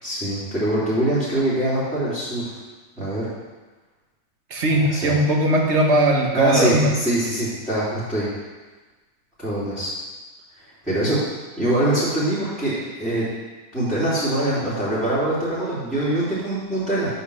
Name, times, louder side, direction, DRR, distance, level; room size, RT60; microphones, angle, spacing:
voice 1, 0.0-2.4 3.0-3.3 4.7-5.1 6.3-8.3 9.4-9.9 10.8-11.2 11.6-13.3 13.7-17.1, right 1 dB, ahead, -13 dB, 3.0 m, -23 dB
voice 2, 4.5-6.9, right 1 dB, 50° right, 1 dB, 1.5 m, -19 dB
8.5 x 5.5 x 6.3 m, 1.3 s
omnidirectional pair, 1.6 m